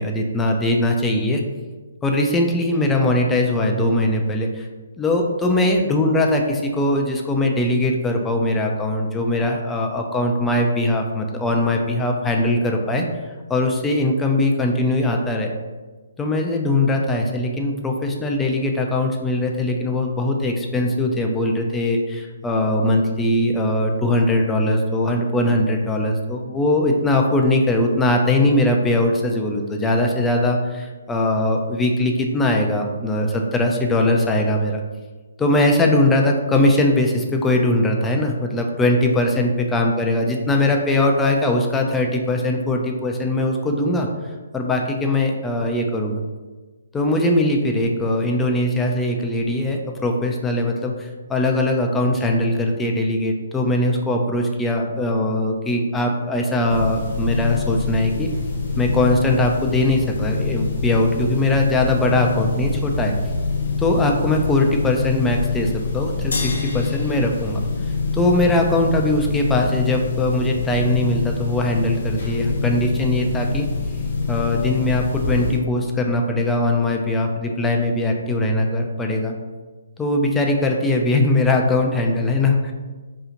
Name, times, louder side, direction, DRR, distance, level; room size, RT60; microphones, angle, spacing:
voice 1, 0.0-1.4 2.0-4.7 5.0-13.0 13.5-15.5 16.2-34.8 35.4-44.1 44.5-46.2 46.9-58.3 58.8-63.1 63.8-67.6 68.1-73.7 74.3-79.3 80.0-82.7, left 1 dB, 10° left, 1 dB, 0.3 m, -20 dB
sound 1, 56.7-75.6, left 4 dB, 55° left, 1.0 m, -25 dB
sound 2, 66.3-68.9, left 3 dB, 80° left, 0.8 m, -34 dB
2.8 x 2.4 x 3.8 m, 1.3 s
hypercardioid pair, 140°, 0 cm